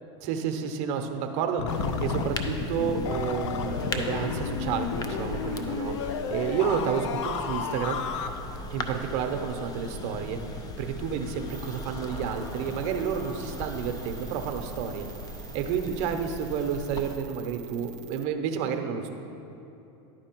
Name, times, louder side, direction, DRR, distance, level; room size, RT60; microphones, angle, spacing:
voice 1, 0.2-8.0 8.7-10.4 10.8-15.1 15.5-19.1, right 7 dB, 50° right, 6 dB, 0.7 m, -30 dB
sound 1, 1.6-8.3, left 6 dB, 80° left, 0.5 m, -32 dB
sound 2, 1.7-17.2, left 2 dB, 25° left, 0.6 m, -37 dB
sound 3, 11.5-18.3, right 11 dB, 85° right, 0.4 m, -49 dB
11.0 x 4.6 x 4.5 m, 3.0 s
supercardioid pair, 120°, 15 cm